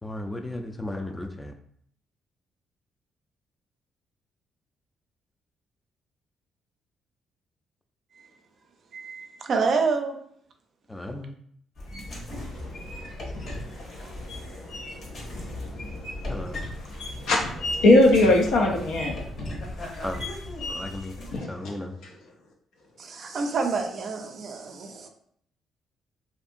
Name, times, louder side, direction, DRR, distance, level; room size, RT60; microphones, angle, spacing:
voice 1, 0.0-1.5 10.9-11.3 16.3-16.6 20.0-20.3 20.7-21.2 21.5-22.0, left 1 dB, 15° left, 6 dB, 0.4 m, -35 dB
voice 2, 8.9-10.2 11.9-12.1 19.8-19.9 23.0-25.1, right 4 dB, 55° right, 5 dB, 0.4 m, -28 dB
sound 1, 11.8-21.4, left 1 dB, 55° left, 0.9 m, -36 dB
voice 3, 12.5-13.1 13.6-13.8 14.1-16.6 17.2-19.1 21.3-21.7, left 2 dB, 85° left, -1 dB, 0.5 m, -23 dB
2.7 x 2.5 x 2.5 m, 0.66 s
cardioid pair, 90°, 0 cm